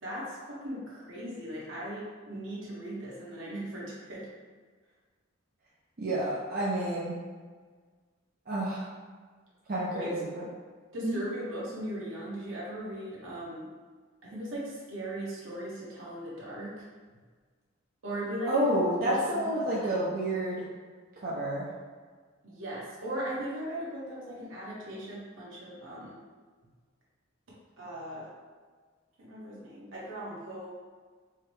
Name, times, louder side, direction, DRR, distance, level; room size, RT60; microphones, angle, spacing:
voice 1, 0.0-4.3 10.0-10.1 10.9-13.7 14.2-16.8 18.0-18.5 19.0-20.0 22.4-26.2 27.8-28.3 29.2-30.8, right 1 dB, 80° right, -7 dB, 1.3 m, -38 dB
voice 2, 6.0-7.2 8.5-8.9 9.7-10.4 11.0-11.2 18.5-20.6 21.2-21.7, right 1 dB, 45° right, -7 dB, 0.6 m, -29 dB
4.6 x 2.2 x 3.2 m, 1.5 s
head